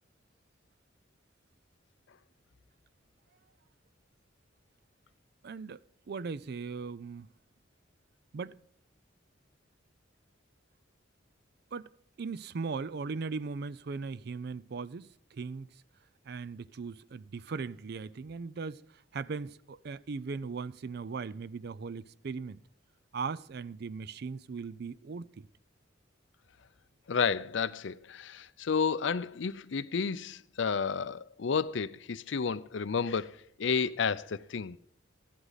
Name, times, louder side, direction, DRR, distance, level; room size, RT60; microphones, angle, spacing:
voice 1, 5.4-5.8 6.1-7.3 8.3-8.6 11.7-11.9 12.2-15.7 16.3-18.8 19.1-22.6 23.1-25.5, right 4 dB, 55° right, 0.4 m, -38 dB
voice 2, 27.1-34.8, left 6 dB, 65° left, 0.5 m, -31 dB
13.0 x 11.0 x 4.0 m
head